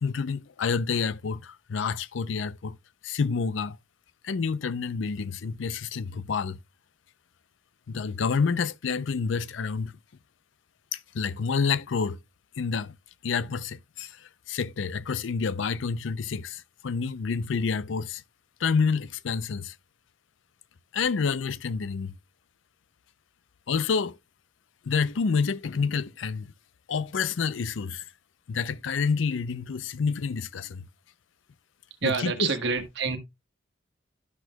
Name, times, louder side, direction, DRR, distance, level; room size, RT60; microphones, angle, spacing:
voice 1, 0.0-2.7 3.0-3.8 4.2-6.6 7.9-9.9 10.9-12.2 12.6-12.9 13.2-18.2 18.6-19.7 20.9-22.2 23.7-24.2 24.9-26.5 26.9-28.0 28.5-30.9 32.0-32.5, left 5 dB, 85° left, 0.5 m, -28 dB
voice 2, 32.0-33.2, right 5 dB, 65° right, 1.4 m, -27 dB
12.0 x 6.1 x 2.2 m
head